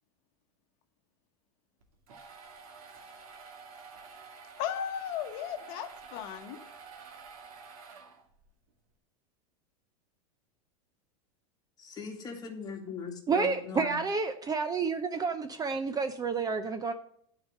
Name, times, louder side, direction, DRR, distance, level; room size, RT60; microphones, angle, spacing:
sound 1, 1.8-8.5, right 5 dB, 75° right, 2.1 m, -50 dB
voice 1, 4.6-6.6, left 9 dB, 55° left, 6 dB, 1.1 m, -36 dB
voice 2, 11.8-14.0, left 5 dB, 20° left, 0 dB, 2.3 m, -39 dB
voice 3, 13.3-16.9, right 4 dB, 20° right, 9 dB, 0.7 m, -30 dB
9.6 x 5.0 x 7.6 m, 0.65 s
supercardioid pair, 125°, 19 cm